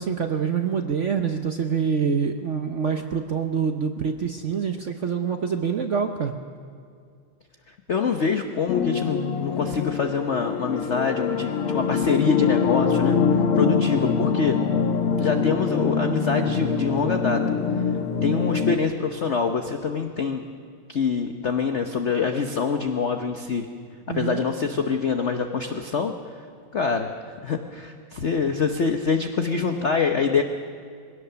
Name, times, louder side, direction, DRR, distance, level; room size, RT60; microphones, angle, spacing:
voice 1, 0.0-6.3 24.1-24.5, right 6 dB, 65° right, 5 dB, 0.7 m, -26 dB
voice 2, 7.9-13.2 13.5-14.6 15.2-17.4 18.2-20.4 20.9-23.7 24.1-26.1 26.7-27.1 27.4-30.4, left 5 dB, 55° left, 5 dB, 0.8 m, -25 dB
sound 1, 8.7-18.8, left 6 dB, 90° left, 2.0 m, -24 dB
22.0 x 17.0 x 6.9 m, 2.2 s
omnidirectional pair, 2.4 m